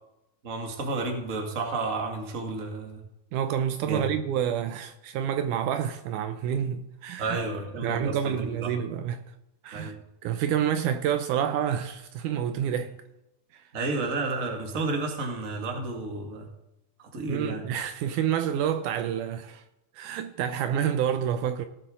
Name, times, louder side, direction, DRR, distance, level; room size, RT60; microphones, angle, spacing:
voice 1, 0.4-3.0 3.8-4.1 7.2-8.7 9.7-9.9 13.7-16.5 17.0-17.6, right 3 dB, 30° right, 1.6 m, -31 dB
voice 2, 3.3-7.4 7.8-9.2 9.6-9.9 10.2-13.0 13.5-13.6 17.3-19.6 20.0-21.7, right 9 dB, 80° right, 2.0 m, -28 dB
18.0 x 8.1 x 3.7 m
omnidirectional pair, 3.8 m